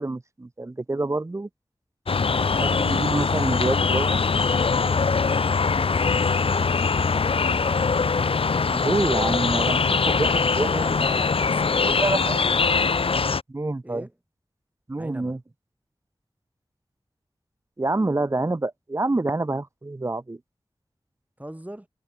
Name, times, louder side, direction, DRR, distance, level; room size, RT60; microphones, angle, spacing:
voice 1, 0.0-1.5 2.6-4.2 8.7-10.7 11.9-12.4 13.5-14.0 14.9-15.4 17.8-20.4, right 2 dB, 30° right, 0.7 m, -27 dB
sound 1, 2.1-13.4, left 4 dB, 70° left, 0.6 m, -22 dB
voice 2, 2.2-2.6 10.2-12.0 12.3-12.8 13.8-14.1 15.0-15.3 21.4-21.9, right 1 dB, 15° right, 5.1 m, -40 dB
wide cardioid pair, 50°, 10 cm